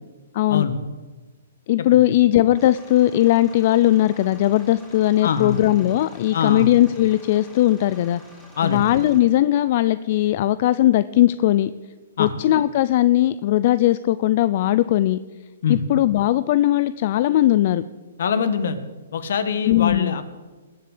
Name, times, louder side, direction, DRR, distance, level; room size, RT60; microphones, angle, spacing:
voice 1, 0.3-0.7 1.7-8.2 8.6-11.7 12.2-15.2 15.7-17.8 19.7-20.1, left 14 dB, 45° left, 15 dB, 0.5 m, -18 dB
sound 1, 2.6-9.2, left 1 dB, 10° left, 3.9 m, -48 dB
voice 2, 5.2-5.6 6.3-6.7 8.6-8.8 12.2-12.3 15.6-15.8 18.2-18.8 19.1-20.2, left 6 dB, 65° left, 11 dB, 1.8 m, -23 dB
21.0 x 7.7 x 8.4 m, 1.2 s
hypercardioid pair, 150°, 0 cm